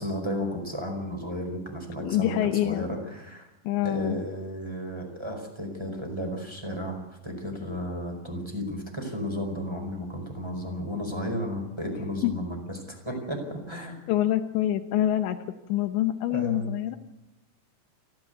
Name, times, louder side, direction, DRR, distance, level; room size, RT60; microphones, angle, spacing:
voice 1, 0.0-3.5 3.8-14.0 16.3-16.7, equal, 5° right, 1 dB, 4.4 m, -33 dB
voice 2, 2.0-2.9 3.6-4.2 12.2-12.3 14.1-15.4 15.7-17.0, left 13 dB, 85° left, 7 dB, 3.2 m, -25 dB
29.0 x 12.5 x 8.1 m, 0.99 s
omnidirectional pair, 5.1 m